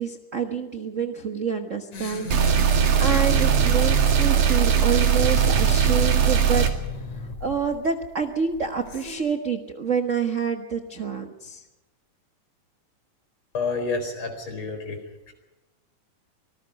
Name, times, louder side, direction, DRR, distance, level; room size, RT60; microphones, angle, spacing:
voice 1, 0.0-6.7 7.1-11.6, right 6 dB, 50° right, 5 dB, 0.9 m, -28 dB
sound 1, 1.9-9.2, left 3 dB, 65° left, 4.2 m, -34 dB
sound 2, 2.3-6.7, right 7 dB, 85° right, 3.7 m, -19 dB
voice 2, 13.5-15.0 15.3-15.4, left 4 dB, 40° left, 6 dB, 5.2 m, -29 dB
26.0 x 19.5 x 5.3 m, 1.1 s
omnidirectional pair, 3.5 m